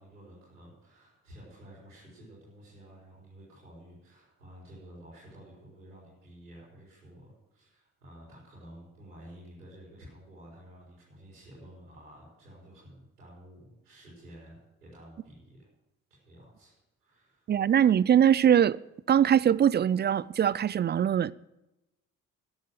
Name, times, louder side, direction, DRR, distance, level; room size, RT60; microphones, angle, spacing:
voice 1, 0.0-15.7 16.1-16.7 17.0-17.6, equal, 90° right, 4.8 m, -51 dB
voice 2, 17.5-18.8 19.1-21.3, right 9 dB, 25° right, 0.4 m, -22 dB
13.0 x 9.1 x 7.8 m
figure-of-eight pair, 45°, 45 cm